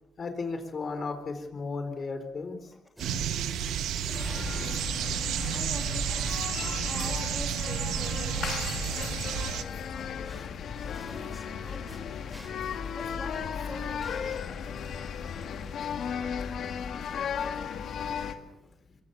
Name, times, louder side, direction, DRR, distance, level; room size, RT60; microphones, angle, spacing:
voice 1, 0.2-2.7 18.2-18.3, left 4 dB, 45° left, 8 dB, 4.3 m, -35 dB
sound 1, 3.0-15.9, equal, 5° right, 4.9 m, -51 dB
sound 2, 3.0-9.6, right 10 dB, 85° right, 1.4 m, -31 dB
sound 3, 4.1-18.3, left 7 dB, 65° left, 2.1 m, -35 dB
voice 2, 5.2-10.4 11.0-12.2 12.9-14.5 16.6-16.8, left 2 dB, 15° left, 2 dB, 3.2 m, -46 dB
23.5 x 22.0 x 7.1 m, 0.92 s
cardioid pair, 90°, 0 cm